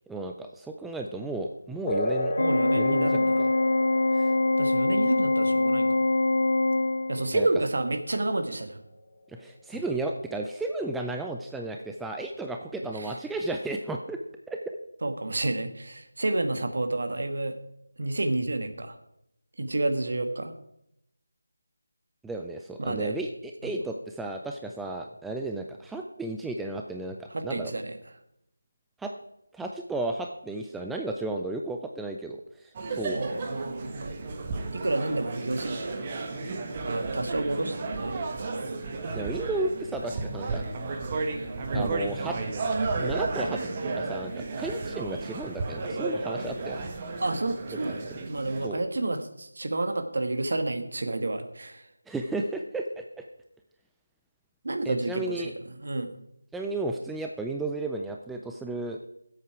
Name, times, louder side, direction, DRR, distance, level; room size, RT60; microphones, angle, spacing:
voice 1, 0.1-2.3 2.7-3.1 3.4-3.5 4.1-4.3 7.3-7.5 9.4-14.2 14.5-14.6 22.2-27.7 29.0-29.1 29.5-33.2 39.1-40.6 41.7-42.4 43.0-46.8 48.1-48.2 48.6-48.8 52.1-53.0 54.9-55.5 56.5-59.1, right 2 dB, 5° right, 2 dB, 0.4 m, -33 dB
sound 1, 1.9-9.9, left 1 dB, 30° left, 1.9 m, -36 dB
Organ, 2.4-7.4, left 2 dB, 65° left, 0.5 m, -24 dB
voice 2, 2.4-3.4 4.6-6.1 7.1-8.8 12.9-13.1 15.0-17.5 18.0-18.9 19.6-20.5 22.8-23.2 27.3-28.0 33.1-34.1 34.7-35.9 36.8-38.7 41.7-41.9 47.2-51.8 54.6-55.5 55.8-56.2, right 2 dB, 55° right, 8 dB, 1.4 m, -30 dB
sound 2, 32.7-48.7, right 3 dB, 25° right, 1.1 m, -33 dB
15.0 x 8.2 x 4.8 m, 0.80 s
figure-of-eight pair, 165°, 0 cm